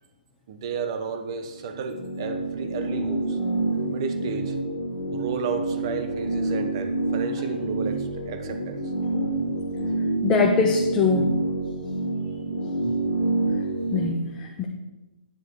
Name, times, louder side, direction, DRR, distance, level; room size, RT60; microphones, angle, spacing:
voice 1, 0.5-3.4 3.9-4.5 5.1-8.8, right 5 dB, 30° right, 7 dB, 0.8 m, -32 dB
sound 1, 1.5-14.1, right 2 dB, 40° left, 1.8 m, -27 dB
voice 2, 10.2-11.3 13.9-14.7, left 5 dB, 10° left, 0 dB, 0.5 m, -22 dB
9.7 x 5.1 x 4.6 m, 1.1 s
hypercardioid pair, 170°, 5 cm